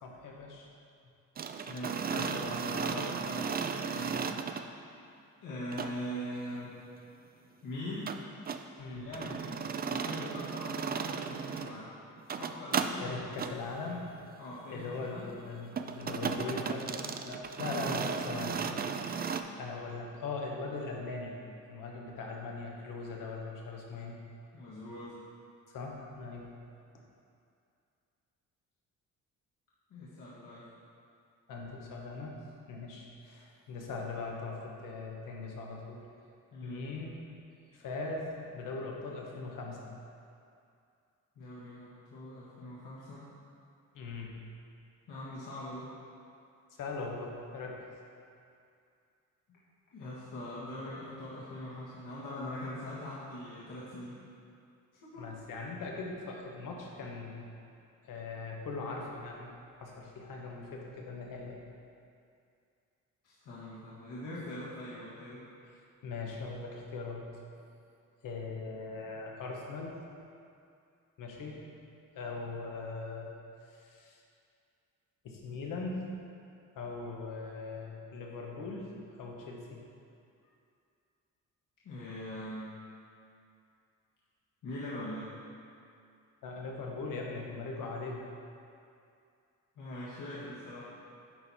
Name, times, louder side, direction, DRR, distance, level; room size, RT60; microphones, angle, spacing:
voice 1, 0.0-0.7 1.5-1.6 2.1-3.6 3.9-4.3 8.8-9.1 13.0-14.3 14.6-18.9 19.5-21.4 21.7-24.2 25.7-26.5 31.5-32.4 32.7-36.0 36.6-37.2 37.7-39.9 43.9-44.3 46.8-47.8 55.2-57.5 58.0-59.5 59.7-61.6 66.0-67.3 68.2-69.9 71.2-71.6 72.1-73.3 73.7-74.2 75.2-76.0 76.7-78.9 79.2-79.8 86.4-88.3, left 3 dB, 90° left, -1 dB, 1.3 m, -40 dB
sound 1, 1.4-4.6 5.7-5.9 8.1-8.6 9.1-11.7 12.2-12.9 13.3-13.5 15.8-19.4, right 6 dB, 30° right, 0.4 m, -35 dB
voice 2, 1.7-2.5 5.4-6.8 7.6-8.1 8.9-11.9 12.4-13.4 14.4-15.3 24.5-25.2 29.9-30.6 36.5-36.8 41.4-43.2 45.1-45.9 49.5-49.6 49.9-54.2 55.0-55.3 63.2-65.4 81.8-82.8 84.6-85.3 89.8-90.9, left 1 dB, 70° left, -9 dB, 1.7 m, -42 dB
10.5 x 4.6 x 4.2 m, 2.5 s
cardioid pair, 115°, 32 cm